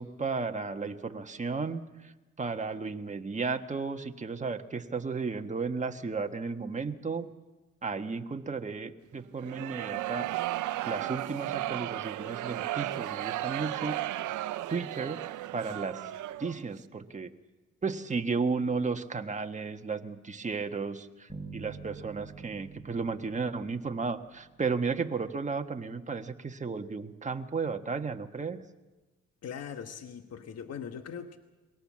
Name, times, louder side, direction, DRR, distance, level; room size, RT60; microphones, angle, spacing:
voice 1, 0.0-2.1 2.4-7.3 7.8-10.3 10.9-14.0 14.7-15.2 15.5-16.1 16.4-17.3 17.8-28.6, right 4 dB, 25° right, 5 dB, 1.4 m, -34 dB
sound 1, 9.4-16.6, right 14 dB, 80° right, 0.7 m, -34 dB
sound 2, 21.3-25.0, right 4 dB, ahead, 4.8 m, -47 dB
voice 2, 29.4-31.4, left 7 dB, 55° left, 7 dB, 1.3 m, -40 dB
23.0 x 18.0 x 7.5 m, 1.2 s
cardioid pair, 90°, 30 cm